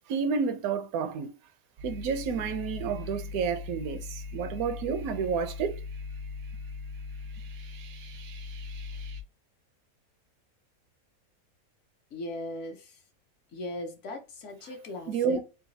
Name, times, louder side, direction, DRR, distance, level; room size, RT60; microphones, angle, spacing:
voice 1, 0.1-1.3 1.8-5.8 15.1-15.4, right 6 dB, 80° right, 1.0 m, -30 dB
sound 1, 1.8-9.2, left 4 dB, 60° right, 0.7 m, -40 dB
voice 2, 12.1-13.0 13.5-15.4, left 1 dB, 60° left, 1.0 m, -38 dB
3.9 x 2.3 x 2.6 m
omnidirectional pair, 1.5 m